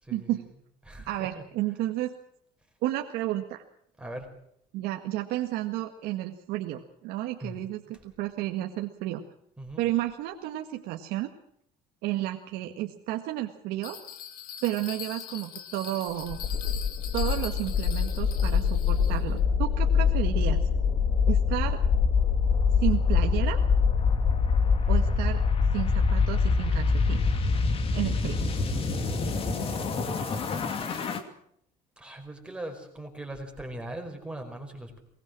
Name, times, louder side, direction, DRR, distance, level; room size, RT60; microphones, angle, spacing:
voice 1, 0.1-0.4 1.1-2.1 2.8-3.6 4.7-9.2 9.8-11.3 12.0-14.0 14.6-16.4 17.1-20.6 21.3-21.8 22.8-23.6 24.9-25.4 25.7-27.2 27.9-28.4, right 14 dB, 85° right, 4 dB, 1.8 m, -32 dB
voice 2, 0.8-1.4 4.0-4.3 7.4-7.6 9.6-9.8 29.6-31.2 32.0-35.0, right 1 dB, 5° right, 3 dB, 5.1 m, -41 dB
Bell, 13.8-19.4, left 9 dB, 60° left, 2.4 m, -42 dB
sound 1, 16.2-31.2, left 5 dB, 35° left, 2.8 m, -25 dB
23.0 x 20.5 x 6.2 m, 0.70 s
cardioid pair, 150°, 16 cm